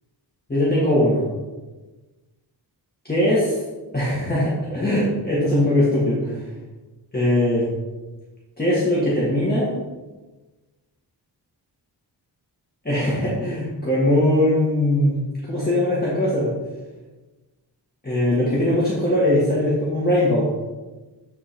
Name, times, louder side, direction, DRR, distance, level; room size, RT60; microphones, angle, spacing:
voice 1, 0.5-1.3 3.1-3.6 3.9-6.5 7.1-7.7 8.6-9.7 12.9-15.2 15.5-16.5 18.0-20.5, left 1 dB, 20° left, -8 dB, 1.7 m, -20 dB
7.7 x 4.4 x 4.3 m, 1.2 s
wide cardioid pair, 120°, 41 cm